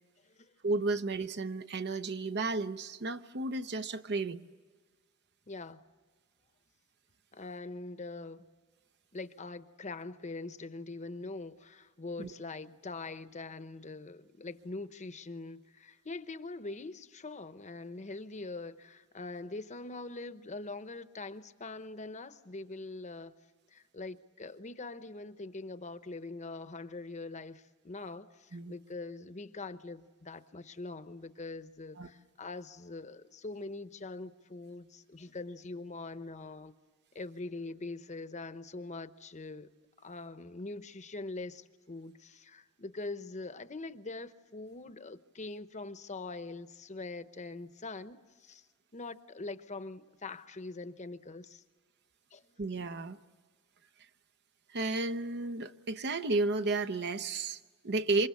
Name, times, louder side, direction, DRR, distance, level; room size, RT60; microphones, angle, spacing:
voice 1, 0.6-4.4 12.2-12.3 28.5-28.7 32.0-32.1 52.6-53.2 54.7-58.3, right 3 dB, 50° right, 0.8 m, -33 dB
voice 2, 5.5-5.8 7.3-8.4 9.1-23.3 23.7-36.7 37.1-39.7 40.0-48.7 48.9-51.6 52.3-52.5, left 3 dB, 35° left, 0.9 m, -43 dB
27.5 x 25.0 x 8.4 m
head